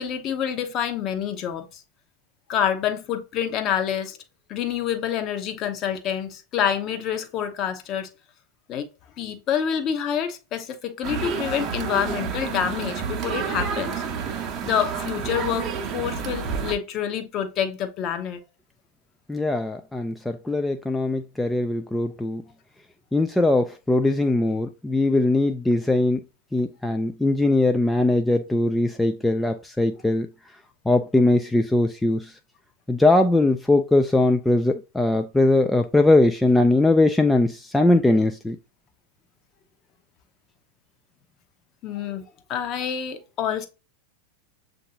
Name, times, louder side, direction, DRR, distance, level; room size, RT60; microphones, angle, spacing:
voice 1, 0.0-1.8 2.5-4.2 4.5-8.1 8.7-8.9 9.2-14.0 14.6-18.4 41.8-43.7, left 9 dB, 35° left, 0.8 m, -27 dB
sound 1, 11.0-16.7, right 6 dB, 35° right, 0.7 m, -29 dB
voice 2, 19.3-22.4 23.1-26.2 26.5-30.3 30.9-32.3 32.9-38.6, left 2 dB, 5° left, 0.4 m, -20 dB
7.3 x 2.6 x 2.7 m
figure-of-eight pair, 90°, 0 cm